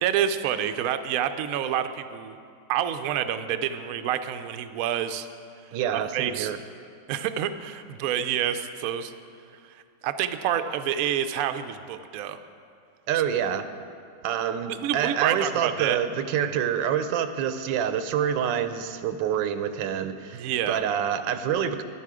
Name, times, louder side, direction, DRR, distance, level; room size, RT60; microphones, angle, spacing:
voice 1, 0.0-2.4 2.7-5.3 5.9-6.5 7.1-9.1 9.7-12.4 14.7-16.0 16.4-16.5 20.3-20.8, right 10 dB, 70° right, 9 dB, 0.8 m, -28 dB
voice 2, 5.7-6.6 13.1-13.7 14.2-21.8, right 9 dB, 90° right, 10 dB, 1.3 m, -27 dB
11.5 x 10.0 x 4.9 m, 2.3 s
omnidirectional pair, 1.9 m